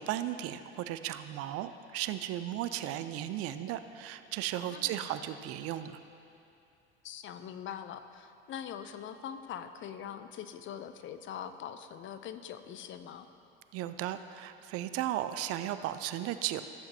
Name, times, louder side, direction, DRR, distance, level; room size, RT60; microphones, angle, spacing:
voice 1, 0.0-6.0 13.7-16.6, right 12 dB, 50° right, 11 dB, 0.5 m, -35 dB
voice 2, 4.7-5.1 7.0-13.3, left 9 dB, 40° left, 10 dB, 0.5 m, -43 dB
14.0 x 7.9 x 2.8 m, 2.7 s
hypercardioid pair, 70°, 30 cm